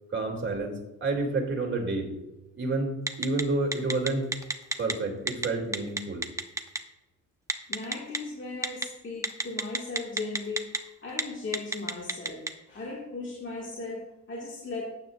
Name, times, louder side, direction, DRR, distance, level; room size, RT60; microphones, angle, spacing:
voice 1, 0.1-2.1 2.5-4.3 4.8-6.2, right 3 dB, 40° right, 1 dB, 2.8 m, -29 dB
Telephone, 3.1-3.4 3.7-4.9 5.3-5.5 5.7-6.8 7.5-8.2 8.6-8.8 9.2-10.8 11.1-11.2 11.5-12.5, right 2 dB, 10° right, 0.8 m, -28 dB
voice 2, 7.7-10.7 11.0-14.8, left 3 dB, 40° left, -3 dB, 1.9 m, -37 dB
12.0 x 9.1 x 2.5 m, 0.99 s
cardioid pair, 90°, 30 cm